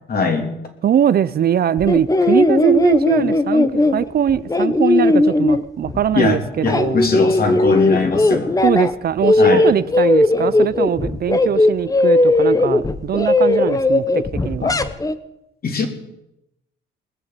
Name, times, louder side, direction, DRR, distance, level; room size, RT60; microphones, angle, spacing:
voice 1, 0.1-0.5 6.1-6.4 6.6-8.5 9.4-9.6 14.6-14.8 15.6-15.9, left 4 dB, 50° left, 3.1 m, -20 dB
voice 2, 0.8-7.0 8.6-14.7, right 9 dB, 50° right, 0.6 m, -21 dB
sound 1, 1.8-6.2 6.5-8.9 9.2-15.1, left 2 dB, 15° left, 0.9 m, -17 dB
20.5 x 7.0 x 8.3 m
cardioid pair, 90°, 20 cm